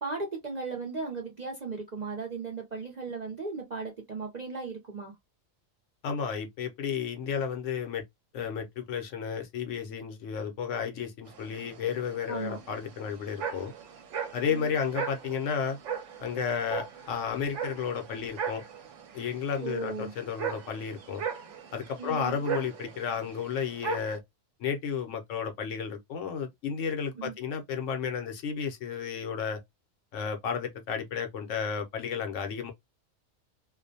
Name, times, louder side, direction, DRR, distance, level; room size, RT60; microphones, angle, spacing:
voice 1, 0.0-5.1 12.3-12.6 14.4-14.7 19.6-20.1 22.0-22.4 27.2-27.3, right 4 dB, 50° right, 0.5 m, -36 dB
voice 2, 6.0-8.0 8.3-13.7 14.3-15.8 16.2-18.6 19.1-21.2 21.7-24.2 24.6-29.6 30.1-32.7, left 7 dB, 70° left, 0.9 m, -32 dB
sound 1, 11.3-24.2, right 7 dB, 70° right, 0.9 m, -39 dB
2.4 x 2.1 x 2.6 m
omnidirectional pair, 1.4 m